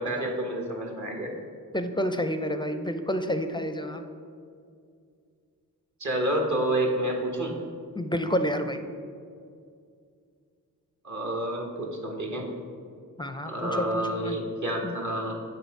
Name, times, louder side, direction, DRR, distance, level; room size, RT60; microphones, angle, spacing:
voice 1, 0.0-1.3 6.0-7.5 11.0-12.5 13.4-15.3, right 1 dB, 45° right, 0 dB, 1.1 m, -29 dB
voice 2, 1.7-4.0 7.9-8.8 13.2-14.4 14.8-14.9, equal, 10° left, 8 dB, 0.4 m, -29 dB
6.8 x 3.8 x 4.6 m, 2.3 s
supercardioid pair, 40°, 40 cm